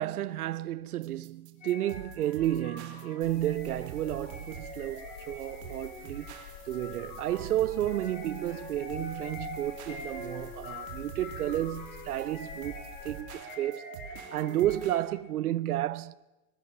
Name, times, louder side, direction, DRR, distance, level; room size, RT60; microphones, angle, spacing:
voice 1, 0.0-6.4 6.7-13.8 14.3-16.1, right 13 dB, 70° right, 1.0 m, -32 dB
sound 1, 1.0-15.0, right 8 dB, 45° right, 3.0 m, -47 dB
sound 2, 1.6-15.3, left 1 dB, 15° left, 4.9 m, -44 dB
sound 3, 3.2-13.2, left 8 dB, 40° left, 2.5 m, -50 dB
22.0 x 22.0 x 6.9 m
supercardioid pair, 170°, 47 cm